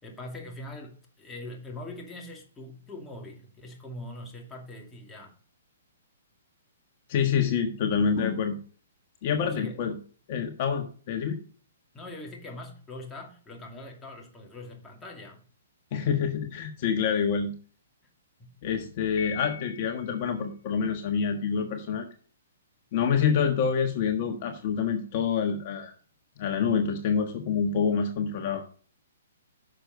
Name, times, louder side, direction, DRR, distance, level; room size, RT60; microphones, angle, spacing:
voice 1, 0.0-5.4 9.3-9.9 11.9-15.4 18.4-18.5, left 2 dB, 10° left, 2.4 m, -42 dB
voice 2, 7.1-8.6 9.2-10.0 10.3-11.4 15.9-17.5 18.6-22.1 22.9-25.9 26.4-28.6, left 6 dB, 45° left, 1.4 m, -27 dB
Piano, 19.2-20.3, left 10 dB, 65° left, 1.4 m, -41 dB
10.0 x 6.7 x 3.9 m
hypercardioid pair, 145°, 0 cm